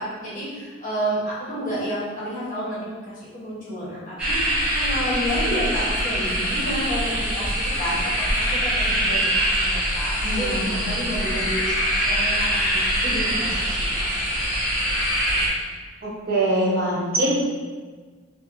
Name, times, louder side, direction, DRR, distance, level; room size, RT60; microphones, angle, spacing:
voice 1, 0.0-13.9 14.1-14.4 15.3-15.5, equal, 40° left, -8 dB, 1.1 m, -30 dB
sound 1, 4.2-15.5, equal, 5° right, 0.9 m, -23 dB
voice 2, 10.2-10.9 16.0-17.4, right 1 dB, 45° right, -5 dB, 0.7 m, -23 dB
4.1 x 2.1 x 3.2 m, 1.4 s
head